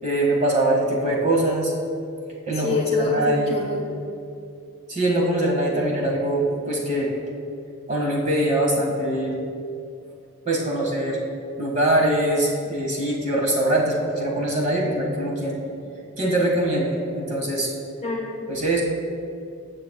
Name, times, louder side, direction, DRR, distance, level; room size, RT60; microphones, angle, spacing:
voice 1, 0.0-1.7 2.5-3.6 4.9-7.1 7.9-9.4 10.4-11.2 11.6-15.6 16.2-17.7 18.5-18.8, right 1 dB, 35° right, -2 dB, 1.6 m, -23 dB
voice 2, 2.6-4.1 18.0-18.4, left 2 dB, 25° left, -1 dB, 1.1 m, -26 dB
20.5 x 7.5 x 2.3 m, 2.5 s
head